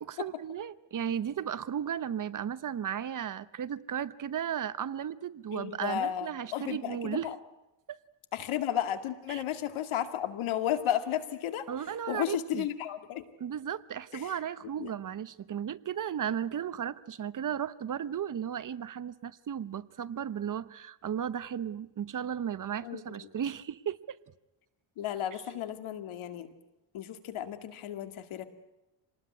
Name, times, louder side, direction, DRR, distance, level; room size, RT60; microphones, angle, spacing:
voice 1, 0.0-7.3 7.9-8.0 9.3-9.4 11.7-12.7 13.4-24.2 25.3-25.6, right 9 dB, 40° right, 0.9 m, -35 dB
voice 2, 5.5-7.3 8.3-11.7 12.1-13.2 14.8-14.9 22.8-23.2 25.0-26.5 26.9-28.4, left 10 dB, 90° left, 2.3 m, -33 dB
26.5 x 19.5 x 9.7 m
cardioid pair, 120°, 47 cm